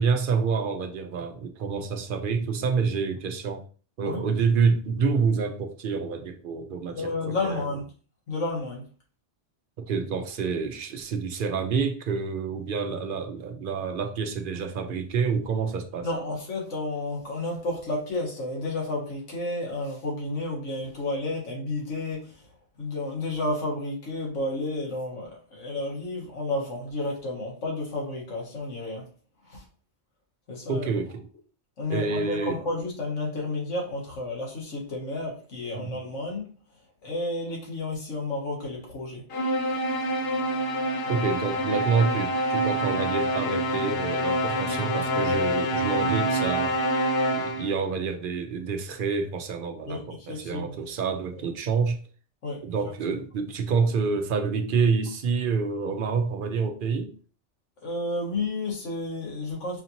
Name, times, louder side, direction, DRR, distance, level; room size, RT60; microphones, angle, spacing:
voice 1, 0.0-3.6 4.0-7.7 9.8-16.1 30.7-31.2 31.9-32.6 35.7-35.9 41.1-46.7 47.3-52.0 52.6-57.1, right 5 dB, 55° right, 0.6 m, -27 dB
voice 2, 6.9-7.8 8.3-8.8 16.0-22.5 22.8-29.1 29.5-29.6 30.5-30.9 31.8-36.5 37.0-39.2 41.0-41.2 49.9-50.8 52.4-52.6 53.1-53.2 57.8-59.8, left 2 dB, 80° left, 1.7 m, -31 dB
sound 1, 39.3-47.8, equal, 60° left, 0.8 m, -26 dB
5.0 x 2.7 x 2.8 m
omnidirectional pair, 1.3 m